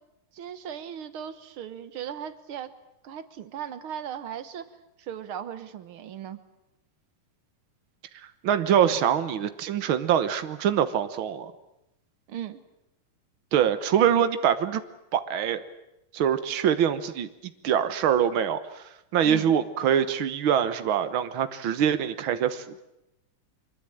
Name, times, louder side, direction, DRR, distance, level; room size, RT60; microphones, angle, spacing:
voice 1, 0.3-2.7 3.0-4.7 5.0-6.4 12.3-12.6 19.2-19.5, right 9 dB, 65° right, 12 dB, 1.3 m, -37 dB
voice 2, 8.4-11.5 13.5-14.8 15.1-15.6 16.1-17.3 17.6-18.8 19.1-22.8, right 9 dB, 80° right, 11 dB, 1.1 m, -24 dB
25.5 x 22.5 x 8.8 m, 0.89 s
omnidirectional pair, 3.9 m